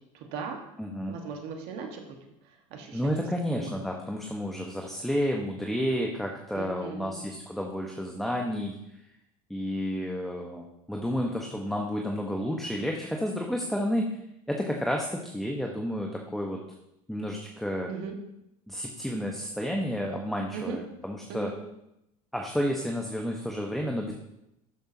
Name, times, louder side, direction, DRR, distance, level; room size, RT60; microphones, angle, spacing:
voice 1, 0.1-0.6 1.1-2.1 2.4-3.1 3.5-3.8 6.5-7.3 17.9-18.2 20.5-20.8 21.3-21.6, right 5 dB, 60° right, 3 dB, 1.6 m, -38 dB
voice 2, 0.8-1.2 2.9-8.8 9.5-14.2 14.5-16.6 17.1-17.9 18.7-21.5 22.3-24.1, equal, ahead, 1 dB, 1.2 m, -31 dB
12.5 x 6.6 x 2.9 m, 0.84 s
hypercardioid pair, 85°, 19 cm